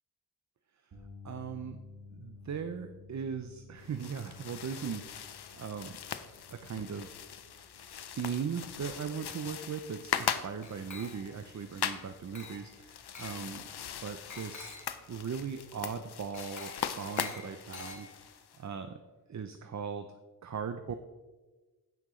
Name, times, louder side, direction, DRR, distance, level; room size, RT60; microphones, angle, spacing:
sound 1, 0.9-13.2 13.5-13.8 15.9-16.0, left 3 dB, 85° right, 1.9 m, -55 dB
voice 1, 1.2-1.8 2.2-6.0 6.5-7.1 8.1-13.6 14.0-14.7 15.1-18.1 18.6-19.0 19.3-20.1 20.4-20.9, right 6 dB, 45° right, 8 dB, 0.6 m, -38 dB
sound 2, 3.8-18.6, left 8 dB, 80° left, 0.6 m, -40 dB
Glass, 10.6-11.5 12.3-12.7 13.1-13.4 14.3-15.0 16.3-18.4, left 3 dB, 50° left, 1.8 m, -47 dB
16.0 x 5.8 x 3.1 m, 1.2 s
wide cardioid pair, 85°, 38 cm